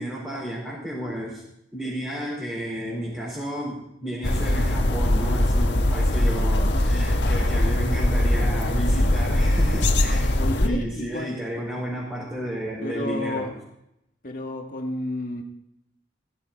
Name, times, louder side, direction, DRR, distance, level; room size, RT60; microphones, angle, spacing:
voice 1, 0.0-1.4 1.7-10.3 10.6-13.5, right 1 dB, 10° right, -8 dB, 4.9 m, -32 dB
sound 1, 4.2-10.7, left 1 dB, 85° left, 1.6 m, -21 dB
voice 2, 6.3-7.3 10.4-11.3 12.8-13.5 14.2-15.4, left 1 dB, 50° left, 1 dB, 1.7 m, -32 dB
16.0 x 14.5 x 4.5 m, 0.80 s
head